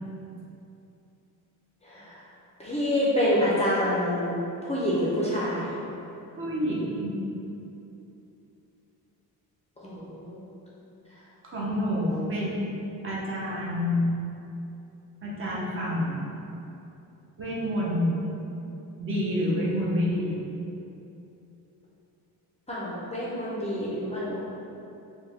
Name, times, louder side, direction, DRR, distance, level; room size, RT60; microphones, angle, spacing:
voice 1, 2.6-4.4 4.6-5.7 9.8-10.4 22.7-24.4, equal, 20° left, -7 dB, 0.5 m, -27 dB
voice 2, 6.4-7.2 11.4-12.6 13.0-14.1 15.2-16.4 17.4-18.2 19.0-20.4, left 1 dB, 35° right, -5 dB, 0.7 m, -28 dB
4.4 x 2.2 x 3.3 m, 2.8 s
cardioid pair, 150°, 37 cm